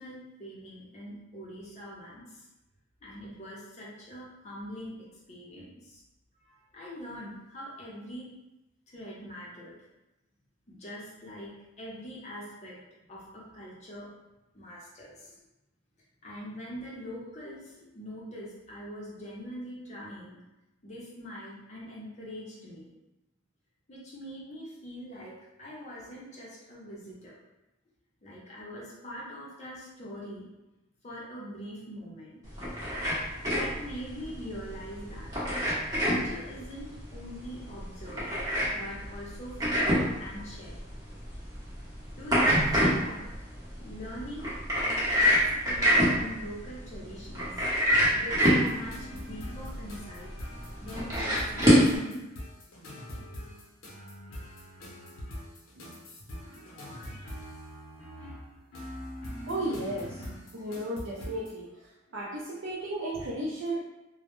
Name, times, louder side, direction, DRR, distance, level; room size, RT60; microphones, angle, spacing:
voice 1, 0.0-2.4 3.0-6.0 6.4-8.3 8.9-9.8 10.7-12.8 13.1-14.1 14.5-15.4 16.2-20.4 20.8-22.9 23.9-27.3 28.2-30.5 31.0-32.5 33.6-35.3 36.0-38.2 38.6-40.8 42.2-43.2 43.8-44.5 44.8-47.5 48.1-50.3 50.8-52.2, equal, 35° left, -5 dB, 0.6 m, -43 dB
sound 1, 32.5-52.0, equal, 15° right, 0.7 m, -27 dB
sound 2, 48.4-61.6, equal, 90° left, 0.7 m, -43 dB
voice 2, 59.5-60.2 60.5-63.8, right 1 dB, 65° right, -6 dB, 0.4 m, -34 dB
2.0 x 2.0 x 2.9 m, 0.99 s
head